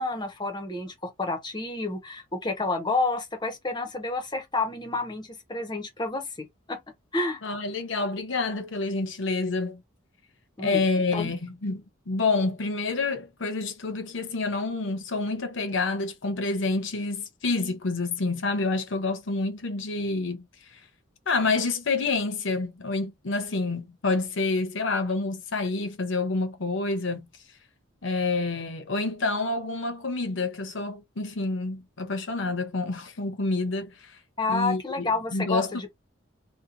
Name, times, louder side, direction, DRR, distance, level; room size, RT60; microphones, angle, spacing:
voice 1, 0.0-6.8 7.1-7.4 10.6-10.8 11.1-11.3 34.4-35.9, left 3 dB, 20° left, 0.7 m, -30 dB
voice 2, 7.4-9.8 10.6-20.4 20.7-20.8 21.3-27.3 28.0-34.2 34.5-35.7, left 3 dB, 65° left, 0.8 m, -28 dB
2.8 x 2.1 x 3.8 m
head